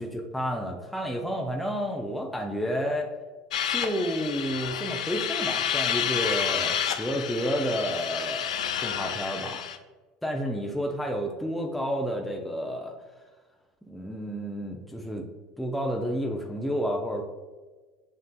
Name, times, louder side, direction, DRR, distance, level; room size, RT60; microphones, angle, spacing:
voice 1, 0.0-3.1 3.7-8.5 8.8-9.6 10.2-12.9 13.9-15.2 15.6-17.2, equal, ahead, 1 dB, 0.5 m, -30 dB
sound 1, 3.5-9.8, left 8 dB, 85° left, 0.3 m, -30 dB
7.4 x 2.6 x 2.2 m, 1.3 s
hypercardioid pair, 85°, 3 cm